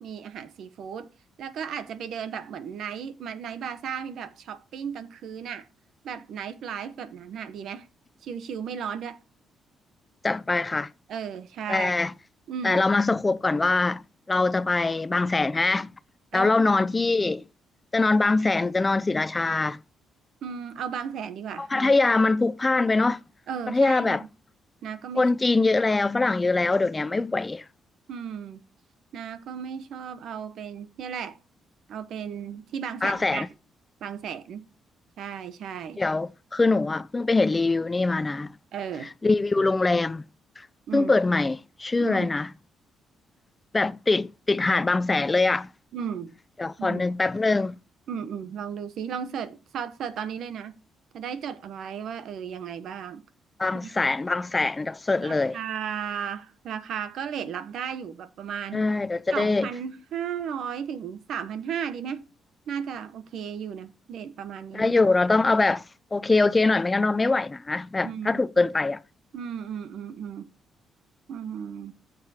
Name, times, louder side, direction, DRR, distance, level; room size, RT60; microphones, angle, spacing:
voice 1, 0.0-1.1 1.4-5.7 6.0-7.9 8.2-9.2 11.1-11.9 12.5-12.9 16.3-16.7 17.2-17.4 20.4-21.9 23.5-24.3 24.8-25.4 28.1-28.6 29.1-31.4 31.9-33.5 34.0-34.7 35.2-36.0 38.7-39.1 40.9-41.1 42.0-42.3 45.9-46.3 46.8-47.0 48.1-50.8 51.1-53.2 53.8-53.9 55.2-58.9 59.3-62.3 62.7-64.9 68.0-68.5 69.3-70.5 71.3-71.9, right 7 dB, 70° right, 0.9 m, -35 dB
voice 2, 10.2-10.9 11.7-12.1 12.6-14.0 14.3-15.9 16.3-17.4 17.9-19.8 21.6-23.2 23.7-24.2 25.2-27.6 33.0-33.5 36.0-38.5 39.2-40.2 40.9-42.5 43.7-45.7 46.6-47.8 53.6-55.6 58.7-59.7 64.7-65.8 66.1-69.0, left 3 dB, 20° left, 0.4 m, -23 dB
14.0 x 7.4 x 2.8 m
cardioid pair, 90°, 0 cm